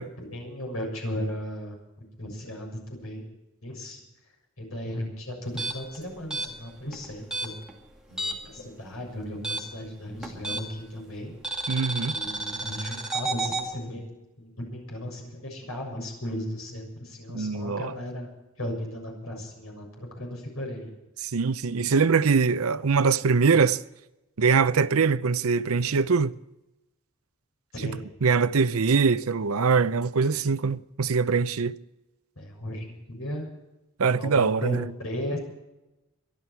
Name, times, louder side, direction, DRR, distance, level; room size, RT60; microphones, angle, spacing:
voice 1, 0.2-1.8 2.2-3.2 3.6-4.0 4.6-7.5 8.1-11.3 12.1-18.3 18.6-20.9 27.8-28.0 32.4-33.5 34.2-35.4, left 1 dB, 80° left, 7.0 m, -36 dB
sound 1, 5.5-8.6 8.8-10.9 11.4-13.7, right 2 dB, 5° right, 2.2 m, -32 dB
voice 2, 11.7-12.1 17.3-18.0 21.2-23.8 24.4-26.3 27.8-31.7 34.0-34.9, right 5 dB, 80° right, 0.6 m, -23 dB
24.5 x 11.5 x 4.6 m
head